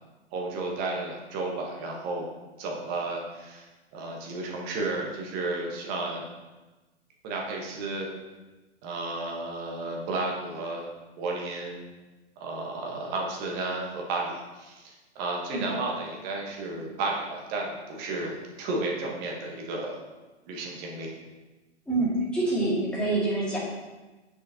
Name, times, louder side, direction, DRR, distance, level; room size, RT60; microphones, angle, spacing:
voice 1, 0.3-2.3 2.6-3.7 3.9-6.2 7.2-8.1 8.8-10.9 11.2-11.8 12.4-20.0 20.5-21.2, right 2 dB, 25° right, -1 dB, 1.3 m, -32 dB
voice 2, 21.9-23.6, right 2 dB, 5° left, -9 dB, 2.1 m, -26 dB
8.2 x 6.4 x 2.9 m, 1.2 s
hypercardioid pair, 130°, 36 cm